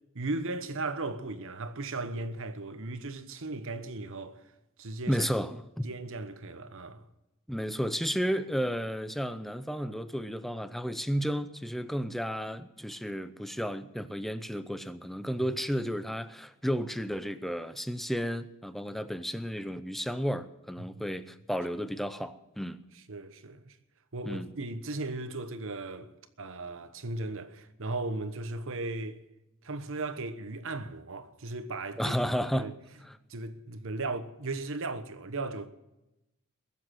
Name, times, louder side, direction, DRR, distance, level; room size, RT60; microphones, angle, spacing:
voice 1, 0.1-4.4 4.8-5.3 5.8-7.1 20.8-21.1 23.1-23.8 24.1-26.1 26.4-29.2 29.6-32.1 32.5-32.7 33.3-35.7, right 2 dB, 60° right, 1.1 m, -36 dB
voice 2, 5.1-5.9 7.5-22.8 24.2-24.5 32.0-32.7 33.0-33.2, equal, ahead, 0.6 m, -32 dB
21.5 x 7.5 x 7.6 m
head